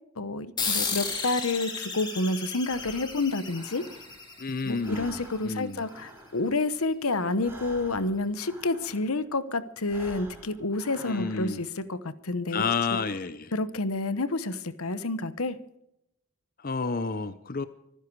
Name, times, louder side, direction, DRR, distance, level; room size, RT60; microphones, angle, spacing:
voice 1, 0.2-3.8 4.6-12.7 13.5-15.6, left 2 dB, 80° left, 14 dB, 1.0 m, -29 dB
sound 1, 0.6-5.5, left 4 dB, 20° left, 2.8 m, -34 dB
Breathing, 2.6-4.4 4.7-9.3 9.8-11.7, right 1 dB, 10° right, 3.9 m, -49 dB
voice 2, 4.4-5.2 5.4-5.8 11.0-11.6 12.5-13.5 16.6-17.7, left 4 dB, 40° left, 12 dB, 0.7 m, -30 dB
25.0 x 10.5 x 4.7 m, 0.81 s
head